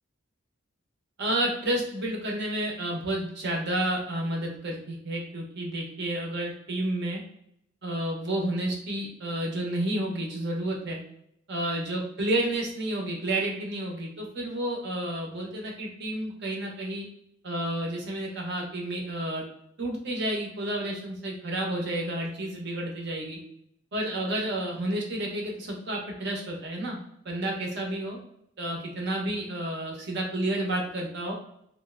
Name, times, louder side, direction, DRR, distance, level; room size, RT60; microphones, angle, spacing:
voice 1, 1.2-7.2 7.8-11.0 11.5-17.1 17.4-19.4 19.8-23.4 23.9-27.0 27.2-28.2 28.6-31.3, right 1 dB, 60° right, 0 dB, 0.9 m, -30 dB
3.1 x 2.6 x 2.4 m, 0.73 s
head